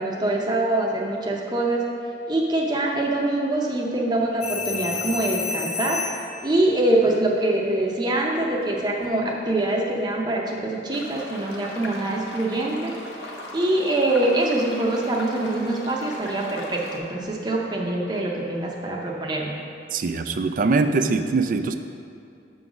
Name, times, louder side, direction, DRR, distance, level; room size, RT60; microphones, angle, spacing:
voice 1, 0.0-1.8 2.3-6.0 6.4-12.9 13.2-19.5, right 1 dB, 25° right, -2 dB, 0.7 m, -24 dB
sound 1, 4.4-6.4 8.8-9.0, left 6 dB, 40° left, 0.6 m, -30 dB
sound 2, 10.9-17.0, left 1 dB, 75° left, 0.9 m, -38 dB
voice 2, 19.9-21.8, right 3 dB, 50° right, 8 dB, 0.3 m, -22 dB
6.8 x 3.9 x 6.0 m, 2.4 s
head